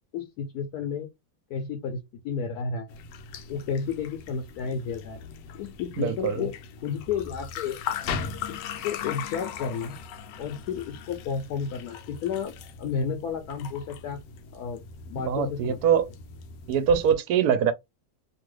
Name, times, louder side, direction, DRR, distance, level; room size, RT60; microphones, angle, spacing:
voice 1, 0.1-1.1 1.5-2.0 2.2-3.0 3.5-5.2 5.5-6.5 6.8-7.8 8.5-10.0 10.4-12.5 12.8-14.2 14.5-14.8 15.1-15.8, left 6 dB, 70° left, 1.0 m, -32 dB
sound 1, 2.9-17.1, left 7 dB, 90° left, 1.2 m, -39 dB
voice 2, 6.0-6.5 15.2-16.1 16.7-17.7, right 8 dB, 70° right, 1.0 m, -23 dB
2.9 x 2.4 x 3.1 m
omnidirectional pair, 1.8 m